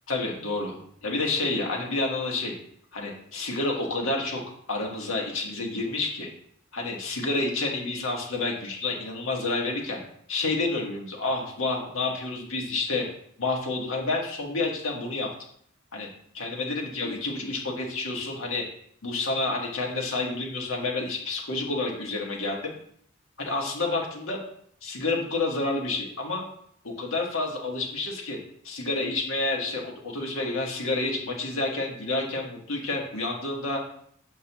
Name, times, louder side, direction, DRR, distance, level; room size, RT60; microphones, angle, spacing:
voice 1, 0.1-2.5 2.9-4.4 4.7-6.3 6.7-10.0 10.3-13.0 13.4-15.3 15.9-16.1 16.3-18.6 19.0-22.7 23.4-24.4 24.8-26.4 26.8-28.4 28.6-33.8, left 2 dB, 80° left, 0 dB, 1.5 m, -29 dB
6.7 x 5.3 x 3.0 m, 0.65 s
head